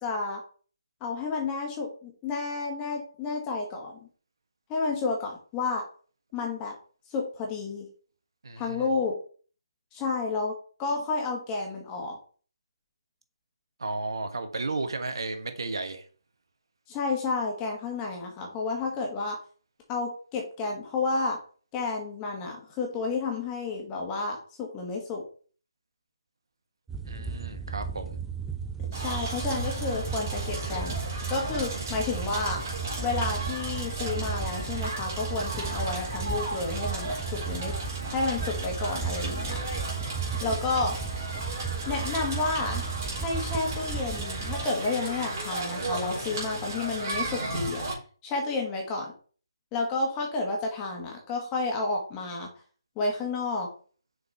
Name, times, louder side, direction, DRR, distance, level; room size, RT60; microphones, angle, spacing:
voice 1, 0.0-0.4 1.0-4.0 4.7-5.8 6.3-6.7 7.1-7.9 8.6-9.2 9.9-10.5 10.8-12.2 16.9-19.4 19.9-21.4 21.7-25.2 28.9-31.0 31.3-32.6 33.0-37.8 38.1-39.6 40.4-40.9 41.9-42.9 43.2-47.8 48.2-49.1 49.7-52.5 53.0-53.7, left 3 dB, 20° left, 0 dB, 2.0 m, -31 dB
voice 2, 8.4-8.9 13.8-16.1 27.0-28.2 40.4-40.6, right 3 dB, 65° right, 8 dB, 1.2 m, -34 dB
sound 1, 26.9-44.7, right 6 dB, 5° right, 0.4 m, -35 dB
Crackle, 28.9-47.9, right 2 dB, 35° right, 3.5 m, -35 dB
6.6 x 4.5 x 4.4 m, 0.41 s
figure-of-eight pair, 150°, 3 cm